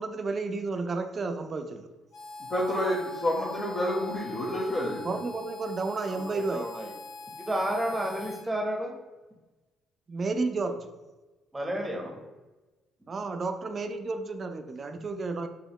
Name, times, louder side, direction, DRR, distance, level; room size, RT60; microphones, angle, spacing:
voice 1, 0.0-1.9 5.0-6.6 10.1-10.9 13.1-15.5, right 3 dB, 40° right, 7 dB, 0.4 m, -32 dB
Harmonica, 2.1-8.5, left 3 dB, 80° left, 0.9 m, -42 dB
voice 2, 2.5-5.1, left 1 dB, 50° left, -9 dB, 1.2 m, -29 dB
voice 3, 6.1-6.9 7.4-8.9 11.5-12.2, right 1 dB, 15° right, 2 dB, 0.8 m, -31 dB
4.0 x 2.9 x 2.9 m, 1.1 s
supercardioid pair, 75°, 0 cm